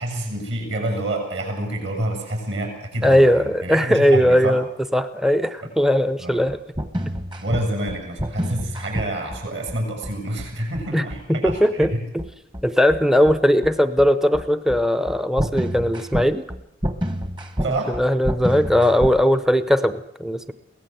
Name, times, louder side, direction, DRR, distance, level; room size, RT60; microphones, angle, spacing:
voice 1, 0.0-4.6 5.6-5.7 6.2-6.4 7.4-12.0 17.6-18.0, right 1 dB, 60° right, 3 dB, 7.3 m, -28 dB
voice 2, 3.0-4.7 4.9-6.6 10.9-11.0 11.3-12.2 12.6-16.5 17.9-20.5, equal, ahead, 12 dB, 0.7 m, -19 dB
sound 1, 6.5-19.2, equal, 25° right, 1.3 m, -28 dB
22.5 x 17.5 x 7.9 m, 0.81 s
head